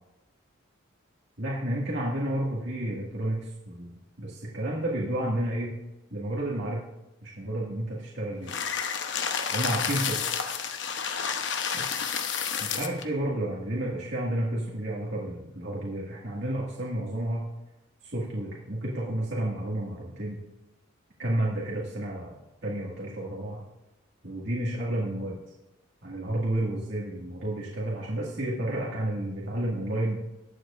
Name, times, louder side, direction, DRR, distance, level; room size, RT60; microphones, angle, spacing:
voice 1, 1.4-5.7 6.1-6.8 7.2-8.5 9.5-10.2 11.7-11.9 12.6-17.4 18.0-20.4 21.2-23.6 24.2-25.4 26.0-30.2, right 1 dB, 60° right, -5 dB, 1.9 m, -31 dB
sound 1, 8.5-13.0, left 7 dB, 65° left, 0.9 m, -30 dB
19.5 x 7.8 x 2.5 m, 0.96 s
head